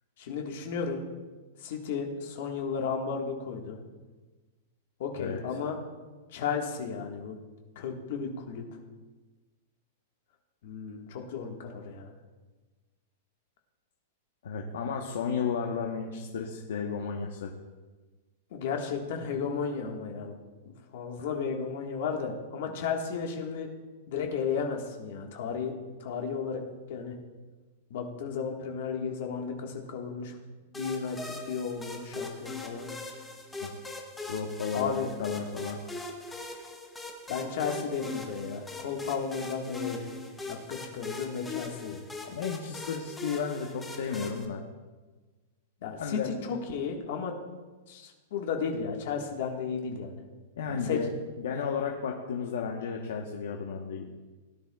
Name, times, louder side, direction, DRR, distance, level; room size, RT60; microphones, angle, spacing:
voice 1, 0.2-1.0 1.6-3.8 5.0-5.8 6.3-7.4 7.7-8.6 10.6-12.1 18.5-20.4 20.6-23.7 24.1-25.7 26.0-26.6 26.9-27.1 27.9-30.4 30.7-32.9 34.7-35.1 37.3-40.1 40.5-42.0 45.8-47.4 47.9-50.1 50.7-51.0, left 6 dB, 50° left, 2 dB, 1.5 m, -34 dB
voice 2, 14.4-17.5 21.2-21.3 33.6-33.7 34.3-35.8 42.2-44.6 46.0-46.3 50.6-51.1 51.4-54.1, left 6 dB, 75° left, 1 dB, 1.0 m, -33 dB
sound 1, 30.7-44.5, left 3 dB, 5° left, 0.8 m, -40 dB
17.5 x 10.5 x 2.3 m, 1.3 s
supercardioid pair, 180°, 0 cm